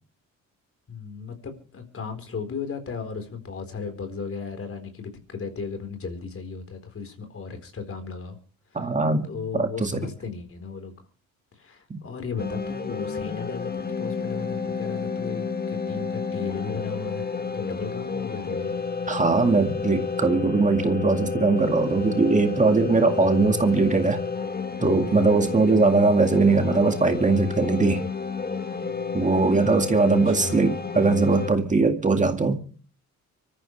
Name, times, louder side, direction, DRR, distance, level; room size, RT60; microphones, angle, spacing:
voice 1, 0.9-8.4 9.2-10.9 11.5-18.8 30.3-30.6, left 5 dB, 45° left, 4.3 m, -35 dB
voice 2, 8.7-10.0 11.9-12.0 19.1-24.2 24.8-28.0 29.1-32.6, right 3 dB, 25° right, 2.1 m, -21 dB
sound 1, 12.4-31.5, left 5 dB, 30° left, 1.7 m, -30 dB
25.0 x 14.0 x 3.3 m
cardioid pair, 90°, 30 cm